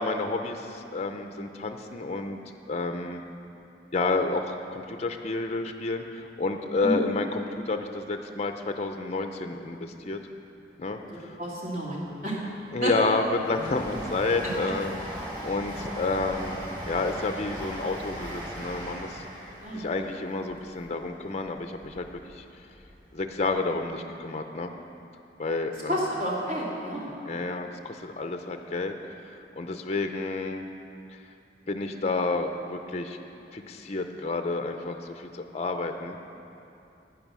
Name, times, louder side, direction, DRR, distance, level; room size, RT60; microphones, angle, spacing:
voice 1, 0.0-2.4 2.7-3.2 3.9-10.2 10.8-11.4 12.7-16.6 16.9-19.2 19.7-22.4 23.1-24.7 25.4-26.0 27.3-30.7 31.7-33.2 33.5-36.4, left 3 dB, 35° left, 6 dB, 0.5 m, -30 dB
voice 2, 11.4-12.4 12.8-12.9 19.6-19.8 25.9-27.1, equal, 50° right, -4 dB, 2.5 m, -30 dB
Train, 12.6-22.2 22.6-23.6 23.8-23.9, equal, 25° right, 2.7 m, -39 dB
11.0 x 9.5 x 6.1 m, 2.7 s
head